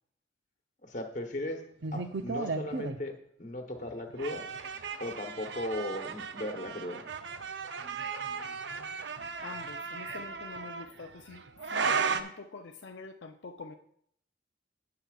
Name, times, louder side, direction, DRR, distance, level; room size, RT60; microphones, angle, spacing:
voice 1, 0.8-1.6 1.9-3.1 3.4-4.4 5.0-7.1, left 1 dB, 40° left, 4 dB, 1.1 m, -37 dB
sound 1, 1.8-3.0 3.9-12.2, right 5 dB, 65° right, 0.6 m, -35 dB
voice 2, 9.4-11.4 11.7-13.7, left 4 dB, 75° left, 4 dB, 0.6 m, -45 dB
17.0 x 6.8 x 2.4 m, 0.67 s
head